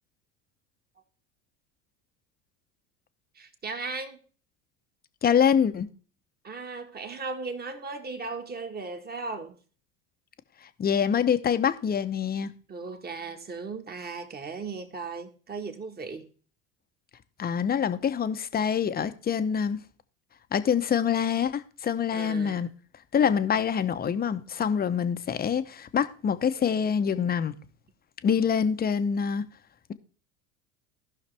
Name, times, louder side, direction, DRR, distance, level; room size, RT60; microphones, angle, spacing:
voice 1, 3.3-4.2 6.4-9.5 12.7-16.3 22.1-22.7 26.6-26.8, right 4 dB, 25° right, 1.6 m, -37 dB
voice 2, 5.2-5.9 10.8-12.5 17.4-19.8 20.5-22.7 23.1-27.5 28.2-29.4, left 7 dB, 25° left, 0.8 m, -25 dB
15.5 x 5.8 x 3.3 m
hypercardioid pair, 85°, 38 cm